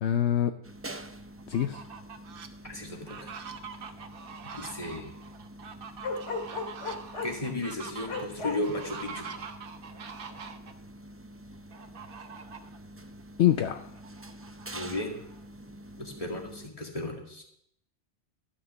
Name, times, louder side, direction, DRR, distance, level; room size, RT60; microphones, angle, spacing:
voice 1, 0.0-0.5 1.5-1.8 13.4-13.9, left 11 dB, 70° left, 8 dB, 0.9 m, -25 dB
sound 1, 0.6-16.7, right 1 dB, 20° right, 0.4 m, -47 dB
Fowl, 1.4-2.5 3.0-10.7 11.7-12.8 13.2-13.3 13.7-15.4, right 5 dB, 55° right, 1.0 m, -44 dB
voice 2, 2.6-3.4 4.5-5.1 7.2-9.3 14.7-15.2 16.0-17.4, left 2 dB, 30° left, 1 dB, 2.1 m, -35 dB
Bark, 6.0-7.4 8.1-8.6, left 4 dB, 90° left, 2.2 m, -33 dB
12.5 x 5.9 x 7.4 m, 0.73 s
omnidirectional pair, 1.2 m